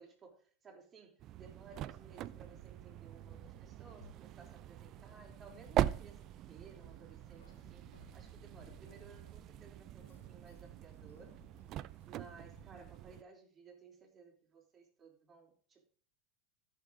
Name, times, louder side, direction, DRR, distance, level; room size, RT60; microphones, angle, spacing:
voice 1, 0.0-7.9 8.1-11.4 12.0-15.9, right 4 dB, 25° right, 3.9 m, -58 dB
sound 1, 1.2-13.2, right 12 dB, 45° right, 0.5 m, -42 dB
Keys jangling, 2.1-12.6, left 5 dB, 90° left, 1.6 m, -64 dB
14.0 x 6.8 x 3.9 m
hypercardioid pair, 95°, 0 cm